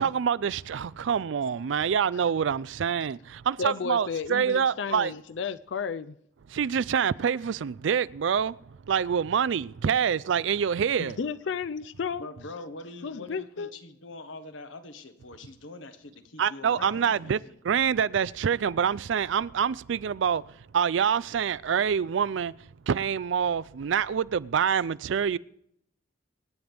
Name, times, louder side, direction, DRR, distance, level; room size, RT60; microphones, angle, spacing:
voice 1, 0.0-5.1 6.5-8.5 8.9-11.2 16.4-17.4 17.6-20.4 20.7-22.5 22.9-25.4, right 7 dB, 75° right, 0.4 m, -26 dB
voice 2, 3.6-6.1 11.0-12.3 13.0-13.7, left 5 dB, 65° left, 0.4 m, -33 dB
voice 3, 12.2-17.6, left 2 dB, 85° left, 1.4 m, -43 dB
25.0 x 9.4 x 3.5 m
head